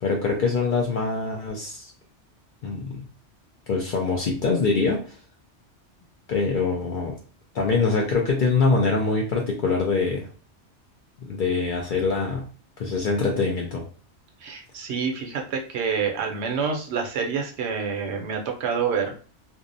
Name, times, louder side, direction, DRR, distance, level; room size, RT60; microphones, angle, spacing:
voice 1, 0.0-1.9 2.6-3.0 3.7-5.1 6.3-7.1 7.5-10.2 11.2-12.4 12.8-13.8, left 4 dB, 60° left, -1 dB, 0.5 m, -24 dB
voice 2, 14.4-19.1, right 6 dB, 70° right, 3 dB, 0.8 m, -27 dB
2.6 x 2.0 x 2.5 m, 0.39 s
omnidirectional pair, 1.2 m